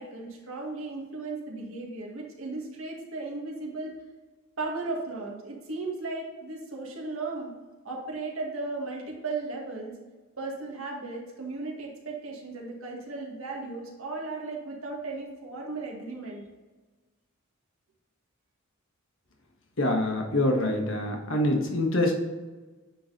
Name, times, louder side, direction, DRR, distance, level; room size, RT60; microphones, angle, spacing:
voice 1, 0.0-4.0 4.6-7.5 7.8-9.9 10.4-16.4, right 3 dB, 70° right, -1 dB, 1.8 m, -36 dB
voice 2, 19.8-22.1, left 1 dB, 60° left, 2 dB, 1.4 m, -25 dB
9.3 x 3.9 x 4.0 m, 1.2 s
head